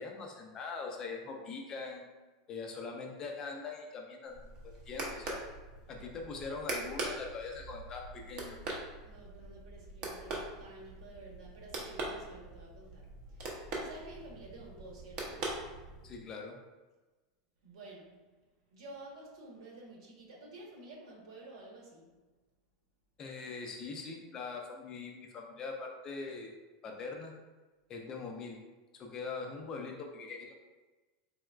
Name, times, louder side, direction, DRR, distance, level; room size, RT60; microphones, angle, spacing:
voice 1, 0.0-2.1 2.5-5.4 5.9-8.8 16.0-16.6 23.2-26.5 26.8-27.4 27.9-28.6 28.9-30.6, left 4 dB, 20° left, 1 dB, 0.4 m, -42 dB
sound 1, 4.3-16.2, right 2 dB, 35° right, 0.7 m, -42 dB
voice 2, 9.0-13.1 13.3-13.4 13.8-15.5 17.6-18.2 18.7-22.1, right 2 dB, 85° right, -2 dB, 1.3 m, -51 dB
4.0 x 3.2 x 2.4 m, 1.2 s
supercardioid pair, 165°, 3 cm